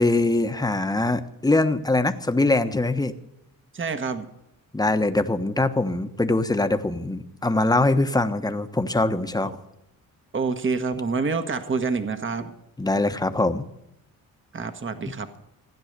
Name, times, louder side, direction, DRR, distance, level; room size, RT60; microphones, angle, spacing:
voice 1, 0.0-3.1 4.7-9.5 12.8-13.6, left 2 dB, 10° left, 8 dB, 1.1 m, -22 dB
voice 2, 3.7-4.3 9.4-9.6 10.3-12.5 14.5-15.3, right 4 dB, 35° right, 9 dB, 1.4 m, -27 dB
16.0 x 9.9 x 6.7 m, 0.84 s
cardioid pair, 90°, 35 cm